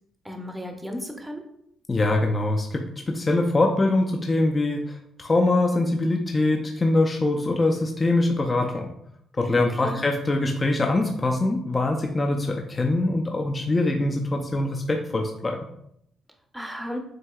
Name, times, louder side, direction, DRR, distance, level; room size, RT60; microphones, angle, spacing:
voice 1, 0.2-1.4 9.6-10.0 16.5-17.0, equal, 5° right, 3 dB, 0.7 m, -34 dB
voice 2, 1.9-8.9 9.4-15.6, left 2 dB, 25° left, 2 dB, 0.5 m, -23 dB
7.5 x 2.7 x 2.3 m, 0.74 s
cardioid pair, 90°, 0 cm